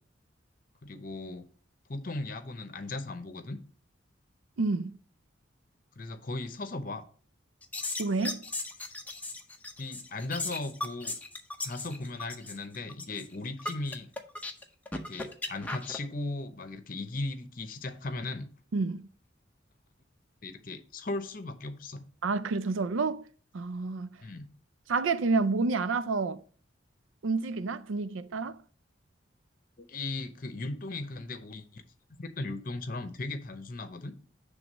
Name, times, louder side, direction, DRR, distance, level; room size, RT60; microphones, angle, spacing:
voice 1, 0.8-1.5 1.9-3.6 6.0-7.0 9.8-11.1 11.6-14.1 15.1-18.5 20.4-22.0 24.2-24.5 29.8-31.8 32.1-34.1, left 2 dB, 45° left, 0.8 m, -37 dB
voice 2, 4.6-4.9 8.0-8.5 18.7-19.0 22.2-23.2 23.5-24.1 24.9-26.4 27.2-28.6, right 3 dB, 80° right, 0.5 m, -29 dB
sound 1, 7.6-16.0, left 2 dB, 10° left, 0.6 m, -37 dB
7.0 x 3.5 x 6.2 m
head